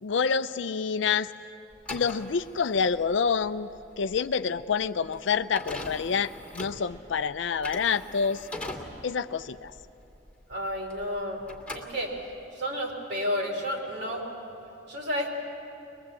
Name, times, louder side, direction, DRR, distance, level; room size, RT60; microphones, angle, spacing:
voice 1, 0.0-1.3 1.9-3.7 4.0-8.5 9.0-9.7, left 6 dB, 75° left, 12 dB, 0.5 m, -27 dB
sound 1, 1.7-11.2 11.4-12.5, left 2 dB, 5° left, 2.3 m, -41 dB
voice 2, 10.5-11.4 11.7-12.1 12.5-14.2 14.9-15.3, equal, 60° right, 1 dB, 3.6 m, -31 dB
23.0 x 21.5 x 8.3 m, 2.8 s
head